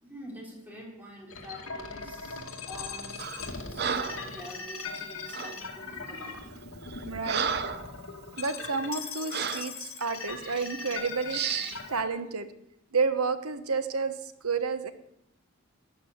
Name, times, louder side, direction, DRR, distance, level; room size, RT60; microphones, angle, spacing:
voice 1, 0.0-6.5 7.9-8.5, equal, 10° right, -3 dB, 3.5 m, -47 dB
sound 1, 1.3-12.0, left 4 dB, 75° left, 2.2 m, -40 dB
Breathing, 3.2-3.5 3.8-4.3 5.3-5.6 6.3-6.4 6.8-7.9 8.4-8.5 9.3-9.7 10.4-10.7 11.3-11.8, right 7 dB, 45° right, 0.7 m, -32 dB
voice 2, 7.1-7.5 8.4-11.4 11.9-12.5 12.9-14.9, right 4 dB, 85° right, 11 dB, 1.1 m, -30 dB
12.5 x 9.7 x 7.1 m, 0.80 s
head